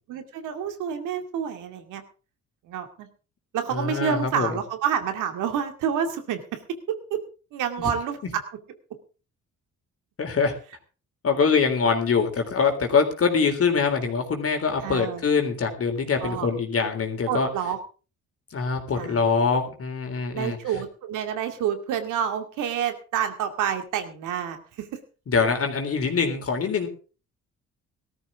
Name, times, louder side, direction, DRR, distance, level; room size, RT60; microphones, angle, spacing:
voice 1, 0.1-2.0 2.7-3.1 3.5-6.6 6.9-7.2 7.5-8.2 14.8-15.2 16.2-16.5 17.3-17.8 19.0-19.2 20.3-24.9, right 8 dB, 90° right, 7 dB, 2.4 m, -28 dB
voice 2, 3.7-4.6 7.8-7.9 10.2-10.5 11.2-17.5 18.5-20.6 25.3-26.9, left 5 dB, 50° left, 4 dB, 3.7 m, -24 dB
18.0 x 13.5 x 3.6 m, 0.35 s
cardioid pair, 90°, 30 cm